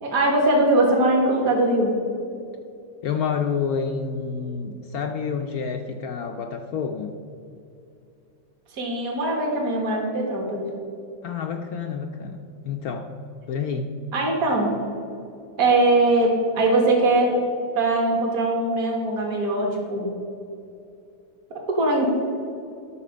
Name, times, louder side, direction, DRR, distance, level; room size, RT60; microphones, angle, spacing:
voice 1, 0.0-1.9 8.7-10.6 14.1-14.7 15.6-17.4 17.8-20.1 21.5-22.1, right 2 dB, 50° right, 0 dB, 2.1 m, -21 dB
voice 2, 3.0-7.2 11.2-13.1 13.5-14.0, left 6 dB, 70° left, 5 dB, 0.9 m, -28 dB
11.0 x 6.6 x 5.1 m, 2.7 s
omnidirectional pair, 2.0 m